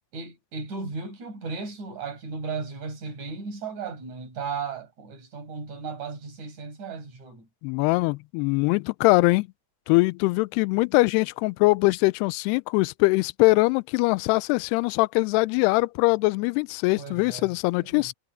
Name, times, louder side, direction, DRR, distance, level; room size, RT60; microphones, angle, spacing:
voice 1, 0.1-7.5 17.0-17.5 17.8-18.1, right 4 dB, 45° right, 7.2 m, -35 dB
voice 2, 7.6-9.5 9.9-18.1, left 24 dB, 85° left, 2.5 m, -22 dB
omnidirectional pair, 4.8 m